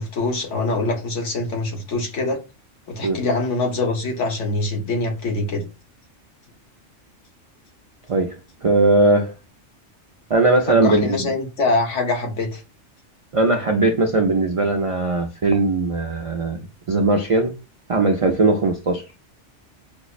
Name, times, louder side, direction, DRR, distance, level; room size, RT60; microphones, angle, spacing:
voice 1, 0.0-2.4 2.9-5.6 10.7-12.6, left 2 dB, 75° left, 1.4 m, -24 dB
voice 2, 8.1-9.3 10.3-11.2 13.3-17.5 17.9-19.0, right 2 dB, 55° right, 0.3 m, -19 dB
5.3 x 2.0 x 2.4 m
omnidirectional pair, 1.2 m